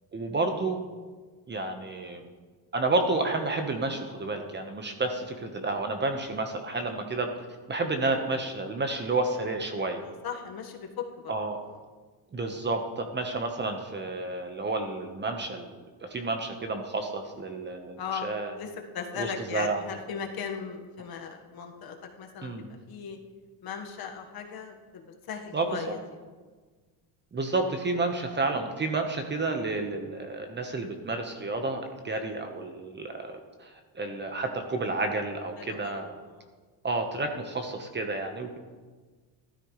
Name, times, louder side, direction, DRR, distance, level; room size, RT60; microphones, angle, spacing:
voice 1, 0.1-0.8 1.5-2.3 2.7-7.3 7.7-10.0 11.3-11.6 12.3-15.7 16.0-18.5 19.2-19.8 22.4-22.7 25.5-25.9 27.3-36.1 36.8-38.6, right 3 dB, 20° right, 5 dB, 1.2 m, -30 dB
voice 2, 10.0-11.3 18.0-23.2 23.6-26.0 35.6-36.0 36.4-36.5, left 6 dB, 50° left, 3 dB, 1.6 m, -38 dB
14.5 x 13.0 x 3.3 m, 1.4 s
cardioid pair, 115°, 47 cm